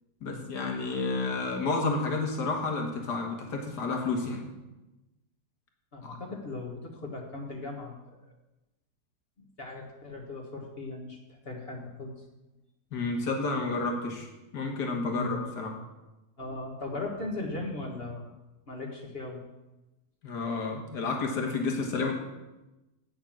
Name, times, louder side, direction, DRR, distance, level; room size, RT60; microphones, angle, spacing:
voice 1, 0.2-4.5 6.0-6.2 12.9-14.3 14.5-15.7 20.2-22.1, left 3 dB, 85° left, 2 dB, 2.1 m, -30 dB
voice 2, 5.9-8.3 9.4-12.1 15.1-15.4 16.4-18.3 18.7-19.4, left 2 dB, 40° left, -1 dB, 1.6 m, -38 dB
9.2 x 6.5 x 7.3 m, 1.0 s
omnidirectional pair, 1.7 m